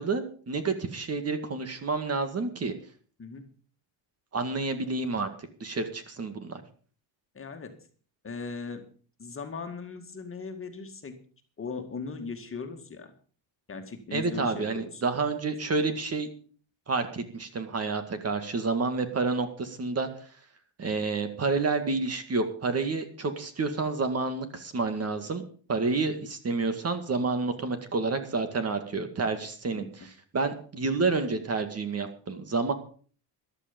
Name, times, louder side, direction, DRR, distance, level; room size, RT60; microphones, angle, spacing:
voice 1, 0.0-2.7 4.3-6.6 14.1-16.3 16.9-20.1 20.8-25.4 25.7-32.7, right 3 dB, 30° right, 8 dB, 2.1 m, -29 dB
voice 2, 7.3-7.7 8.2-8.8 9.2-11.2 11.6-13.1 13.7-15.0 29.7-29.9, left 4 dB, 25° left, 5 dB, 2.1 m, -38 dB
14.0 x 12.0 x 5.3 m, 0.42 s
cardioid pair, 125°, 47 cm